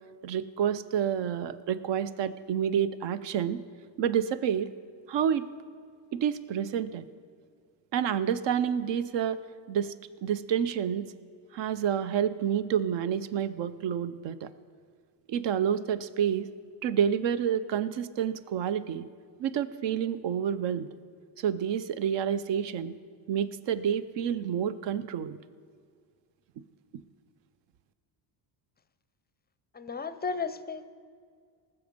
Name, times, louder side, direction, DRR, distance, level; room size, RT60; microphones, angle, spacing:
voice 1, 0.2-3.6 4.0-4.7 5.1-5.4 6.1-7.1 7.9-9.4 9.7-9.9 10.2-11.0 11.5-14.5 15.3-16.5 16.8-19.1 19.4-20.9 21.4-23.0 23.3-25.4, right 8 dB, 60° right, 14 dB, 0.7 m, -29 dB
voice 2, 29.7-30.9, left 5 dB, 20° left, 12 dB, 0.5 m, -34 dB
19.5 x 7.1 x 5.2 m, 2.1 s
cardioid pair, 110°, 48 cm